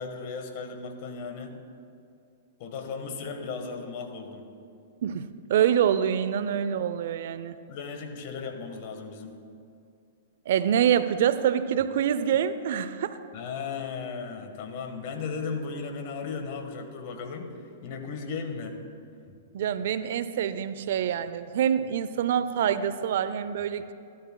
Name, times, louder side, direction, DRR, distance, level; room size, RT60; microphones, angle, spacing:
voice 1, 0.0-1.6 2.6-4.5 7.7-9.3 13.3-17.5 17.8-18.8 19.3-19.4, left 5 dB, 50° left, 5 dB, 1.4 m, -36 dB
voice 2, 5.0-7.6 10.5-13.2 19.5-23.9, right 9 dB, 65° right, 13 dB, 0.4 m, -26 dB
14.5 x 13.0 x 2.3 m, 2.6 s
hypercardioid pair, 120°, 0 cm